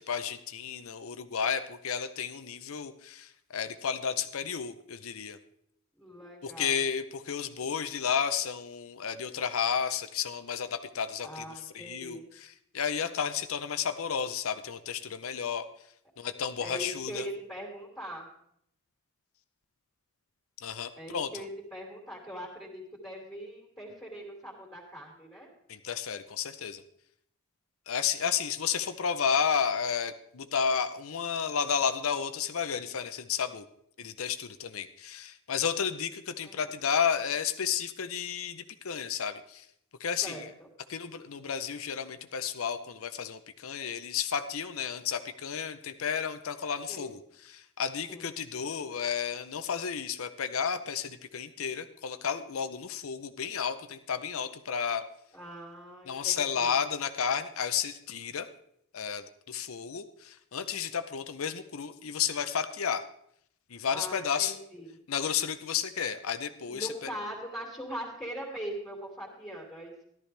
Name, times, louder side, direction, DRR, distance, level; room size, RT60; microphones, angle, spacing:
voice 1, 0.0-5.4 6.4-11.4 11.7-15.7 16.2-17.3 20.6-21.5 25.7-26.8 27.9-33.6 34.0-39.7 40.0-40.5 40.9-55.1 56.1-58.5 58.9-63.0 63.7-64.5 65.1-67.1, left 7 dB, 75° left, 10 dB, 0.6 m, -32 dB
voice 2, 6.0-6.7 11.2-12.3 16.6-18.3 21.0-25.5 36.4-36.7 40.2-40.7 46.9-47.1 48.1-48.3 55.3-56.8 63.9-65.0 66.7-70.0, equal, 10° left, -3 dB, 2.7 m, -41 dB
14.0 x 12.0 x 3.3 m, 0.71 s
head